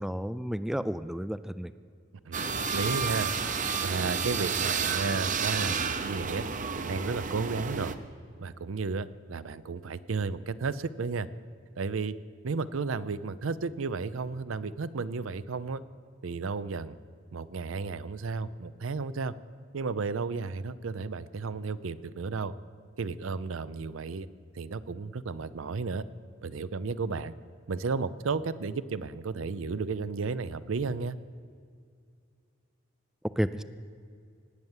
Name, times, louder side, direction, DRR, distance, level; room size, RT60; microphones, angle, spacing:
voice 1, 0.0-1.7 33.4-33.6, equal, ahead, 13 dB, 0.3 m, -31 dB
sound 1, 2.3-7.9, right 5 dB, 40° right, 0.7 m, -31 dB
voice 2, 2.3-3.3 3.8-6.5 6.7-8.0 8.4-11.3 11.8-12.2 12.4-15.8 16.2-16.9 17.3-19.3 19.7-22.5 23.0-24.3 24.5-26.0 26.4-27.3 27.7-31.2, right 4 dB, 80° right, 15 dB, 0.5 m, -33 dB
18.5 x 8.0 x 7.3 m, 2.3 s
head